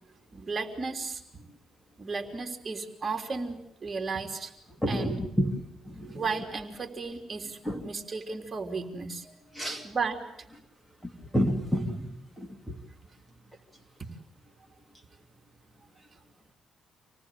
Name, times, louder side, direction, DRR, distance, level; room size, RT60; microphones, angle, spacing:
voice 1, 0.3-1.2 2.0-4.5 4.9-5.2 6.1-7.6 7.8-9.3 9.8-10.2, right 4 dB, 35° right, 4 dB, 3.4 m, -34 dB
voice 2, 4.8-5.5 6.1-6.2 7.7-7.8 9.6-9.8 11.3-12.1 12.4-12.5, equal, 5° left, 4 dB, 2.5 m, -28 dB
27.0 x 19.0 x 8.2 m, 0.79 s
cardioid pair, 90°, 0 cm